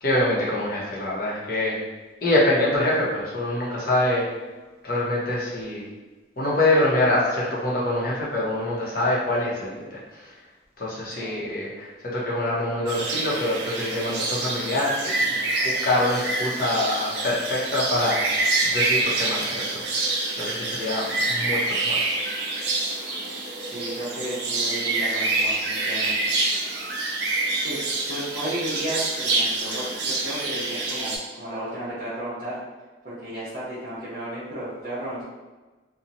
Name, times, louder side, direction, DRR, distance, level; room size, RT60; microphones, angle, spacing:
voice 1, 0.0-1.8 2.2-4.2 4.8-5.8 6.4-10.0 10.8-15.2 15.6-19.8 20.1-22.0, left 1 dB, 50° left, -5 dB, 0.8 m, -25 dB
sound 1, 12.9-31.2, right 2 dB, 65° right, 0.5 m, -26 dB
voice 2, 23.6-26.1 27.6-27.8 28.1-32.6 33.0-35.2, right 1 dB, 50° right, -12 dB, 0.8 m, -33 dB
2.9 x 2.2 x 2.6 m, 1.2 s
head